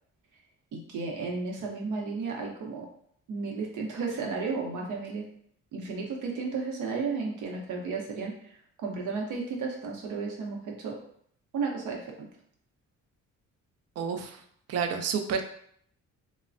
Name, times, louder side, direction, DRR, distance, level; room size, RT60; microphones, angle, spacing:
voice 1, 0.7-2.9 3.3-5.2 5.7-8.3 8.8-11.0 11.5-12.1, right 4 dB, 85° right, 0 dB, 0.8 m, -33 dB
voice 2, 14.0-14.4 14.7-15.4, right 6 dB, 55° right, 6 dB, 0.5 m, -29 dB
3.1 x 2.1 x 2.5 m, 0.64 s
cardioid pair, 90°, 30 cm